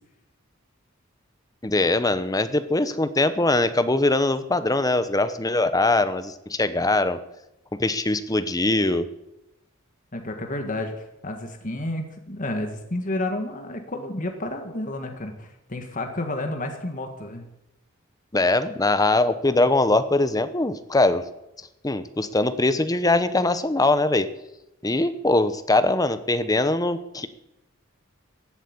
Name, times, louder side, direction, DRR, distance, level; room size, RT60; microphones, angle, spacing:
voice 1, 1.6-7.2 7.7-9.1 18.3-21.2 21.8-24.3 24.8-27.3, left 2 dB, 20° left, 12 dB, 0.9 m, -22 dB
voice 2, 10.1-17.5, left 1 dB, 40° left, 4 dB, 1.7 m, -31 dB
15.5 x 8.3 x 9.7 m, 0.88 s
head